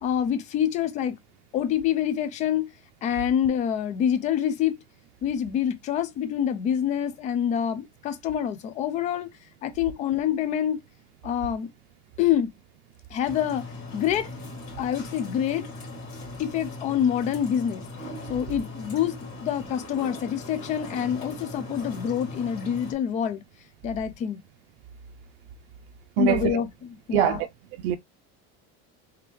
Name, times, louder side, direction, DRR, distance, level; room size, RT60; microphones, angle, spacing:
voice 1, 0.0-1.2 1.5-2.7 3.0-4.8 5.2-9.3 9.6-10.8 11.2-11.7 12.2-12.5 13.1-13.7 13.9-14.3 14.8-15.7 16.4-17.8 18.3-23.4 23.8-24.4 26.2-27.4, left 9 dB, 25° left, 0.4 m, -26 dB
sound 1, 13.2-22.9, left 2 dB, 45° left, 2.1 m, -39 dB
voice 2, 26.2-26.6 27.1-27.4 27.8-28.0, right 13 dB, 85° right, 0.5 m, -23 dB
3.4 x 3.1 x 3.3 m
cardioid pair, 175°, 30 cm